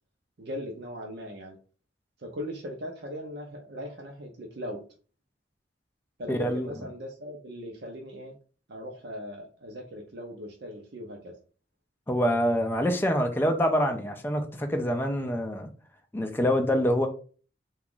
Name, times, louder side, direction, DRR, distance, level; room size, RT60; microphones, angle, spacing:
voice 1, 0.4-1.6 2.2-4.8 6.2-8.3 8.7-11.3, equal, 65° right, 0.6 m, -39 dB
voice 2, 6.3-6.8 12.1-15.7 16.1-17.1, equal, 10° left, 0.4 m, -26 dB
2.9 x 2.3 x 3.7 m
head